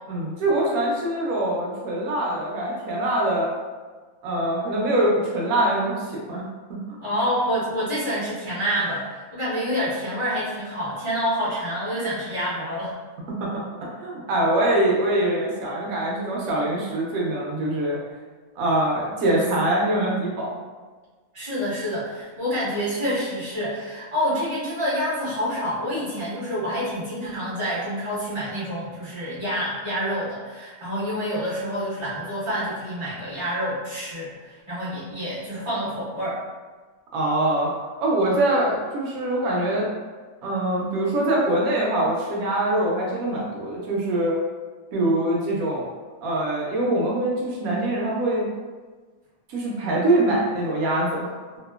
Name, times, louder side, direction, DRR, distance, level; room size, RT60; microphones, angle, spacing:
voice 1, 0.1-3.5 4.2-6.4 6.7-6.8 13.4-18.0 18.6-20.6 37.1-37.7 38.0-39.9 40.4-44.4 44.9-45.9 46.2-48.5 49.5-51.4, right 1 dB, 85° right, -4 dB, 1.1 m, -23 dB
voice 2, 7.0-12.9 21.3-36.4, equal, 25° right, -12 dB, 1.1 m, -27 dB
2.8 x 2.2 x 2.3 m, 1.4 s
omnidirectional pair, 1.4 m